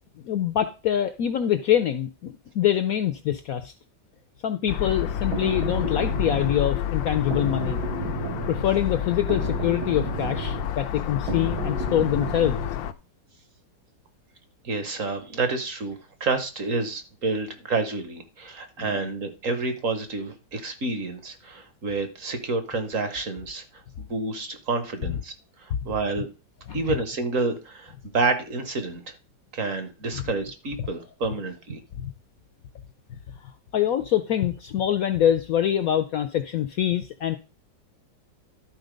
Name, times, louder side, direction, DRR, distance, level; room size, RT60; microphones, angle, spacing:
voice 1, 0.2-3.7 4.4-7.8 8.5-12.6 18.8-19.0 26.7-26.8 30.1-30.2 32.0-32.1 33.4-37.4, left 10 dB, 65° left, 10 dB, 0.9 m, -25 dB
sound 1, 4.7-12.9, left 10 dB, 90° left, 1.4 m, -29 dB
sound 2, 5.0-12.7, right 7 dB, 70° right, 1.8 m, -34 dB
voice 2, 14.6-25.3 25.6-26.3 26.7-29.2 29.5-31.8, right 3 dB, 50° right, 9 dB, 1.3 m, -29 dB
12.0 x 4.1 x 5.2 m, 0.31 s
omnidirectional pair, 2.0 m